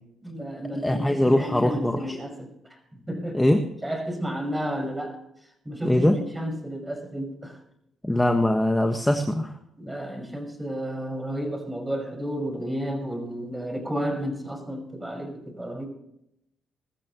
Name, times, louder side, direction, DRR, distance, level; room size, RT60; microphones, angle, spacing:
voice 1, 0.2-2.8 3.1-3.4 3.8-5.2 5.6-7.6 9.8-15.9, equal, 10° right, 4 dB, 5.6 m, -32 dB
voice 2, 0.8-2.2 3.3-3.6 5.8-6.2 8.0-9.5, left 1 dB, 10° left, 4 dB, 1.5 m, -22 dB
21.5 x 14.0 x 3.1 m, 0.78 s
cardioid pair, 90°, 0 cm